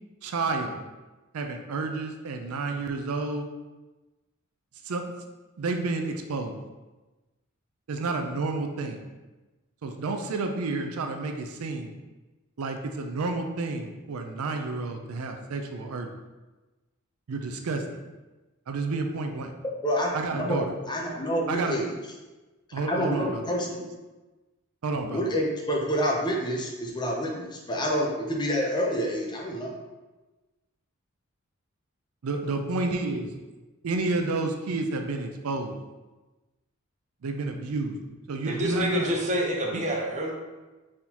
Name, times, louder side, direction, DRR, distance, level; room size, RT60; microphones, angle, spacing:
voice 1, 0.2-0.8 1.3-3.5 4.9-5.0 5.6-6.6 7.9-9.0 9.8-11.9 12.6-16.1 17.3-17.8 18.7-19.5 20.1-20.7 21.5-21.8 22.7-23.5 23.8-23.9 24.8-25.2 32.2-33.3 33.8-35.8 37.2-38.0 38.3-39.2 39.7-39.8, right 3 dB, 85° right, 5 dB, 0.5 m, -30 dB
voice 2, 19.8-21.9 22.9-23.9 25.1-29.8, equal, 20° left, -1 dB, 0.6 m, -28 dB
voice 3, 38.5-40.3, equal, 35° right, 0 dB, 0.7 m, -27 dB
4.4 x 3.6 x 2.8 m, 1.2 s
head